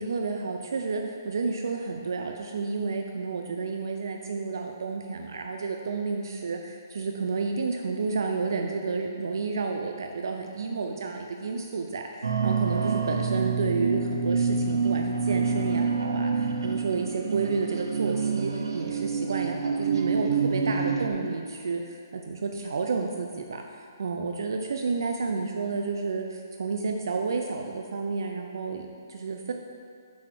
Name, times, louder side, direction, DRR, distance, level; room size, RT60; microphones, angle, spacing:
voice 1, 0.0-29.5, right 4 dB, 70° right, 3 dB, 0.6 m, -31 dB
sound 1, 12.2-21.1, right 5 dB, 85° right, 1.0 m, -27 dB
6.4 x 5.6 x 6.4 m, 2.2 s
hypercardioid pair, 155°, 2 cm